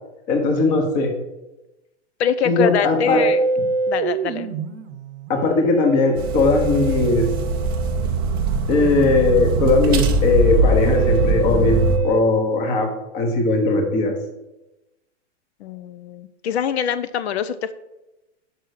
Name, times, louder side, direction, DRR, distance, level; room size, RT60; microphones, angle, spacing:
voice 1, 0.3-1.1 2.4-3.3 5.3-7.3 8.7-12.9 13.1-14.1, left 3 dB, 20° left, 4 dB, 1.0 m, -19 dB
voice 2, 2.2-3.4 3.9-4.5 15.6-17.7, left 8 dB, 65° left, 13 dB, 0.5 m, -24 dB
Musical instrument, 3.1-12.2, right 4 dB, 60° right, 0.8 m, -27 dB
sound 1, 6.2-12.0, right 3 dB, 20° right, 0.4 m, -21 dB
5.5 x 5.4 x 6.4 m, 0.97 s
supercardioid pair, 170°, 36 cm